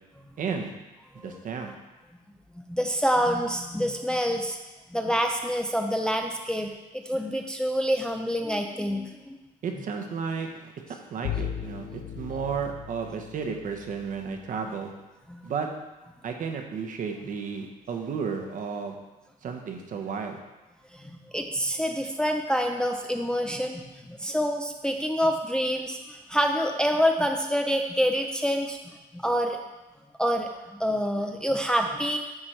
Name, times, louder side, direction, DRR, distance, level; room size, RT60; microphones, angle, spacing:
voice 1, 0.4-0.7 1.1-1.8 9.6-14.9 15.4-15.7 16.2-19.0 19.4-20.4, right 6 dB, 50° right, 3 dB, 1.1 m, -33 dB
voice 2, 2.5-4.6 4.9-9.4 15.3-15.4 20.9-28.8 29.1-29.6 30.2-32.2, equal, 5° left, 3 dB, 0.5 m, -27 dB
Bowed string instrument, 11.2-14.3, left 10 dB, 55° left, 0.4 m, -36 dB
9.6 x 3.9 x 4.4 m, 1.1 s
cardioid pair, 110°, 17 cm